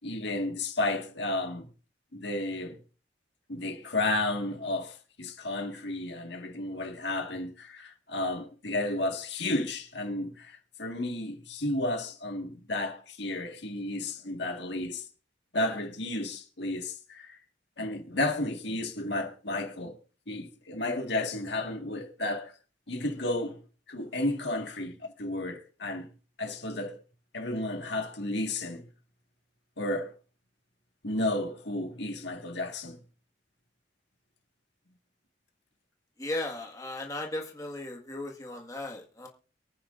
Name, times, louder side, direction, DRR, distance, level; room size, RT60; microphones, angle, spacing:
voice 1, 0.0-1.7 2.1-2.8 3.5-15.0 15.5-17.4 17.8-20.0 20.3-22.5 22.9-23.6 23.9-26.1 26.4-27.0 27.3-28.9 29.8-30.1 31.0-33.0, left 2 dB, 65° left, 1.7 m, -32 dB
voice 2, 36.2-39.3, left 1 dB, 20° left, 1.6 m, -36 dB
23.5 x 9.4 x 2.5 m
head